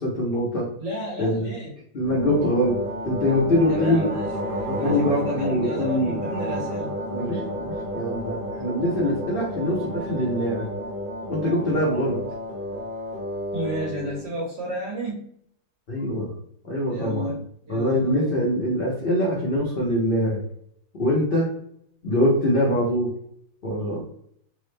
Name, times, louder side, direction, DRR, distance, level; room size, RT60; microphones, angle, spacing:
voice 1, 0.0-0.7 1.2-1.5 1.9-2.8 3.0-4.1 4.7-6.2 7.1-10.7 11.3-12.2 15.9-16.3 16.6-17.3 17.7-20.4 21.0-21.5 22.0-23.1 23.6-24.0, left 1 dB, 65° left, -4 dB, 0.5 m, -23 dB
voice 2, 0.8-1.7 3.7-4.3 4.7-7.0 13.5-15.3 16.9-18.4, right 1 dB, 80° right, -2 dB, 1.8 m, -32 dB
sound 1, 2.0-14.2, equal, 55° right, 0.5 m, -31 dB
3.6 x 2.0 x 3.1 m, 0.67 s
omnidirectional pair, 2.0 m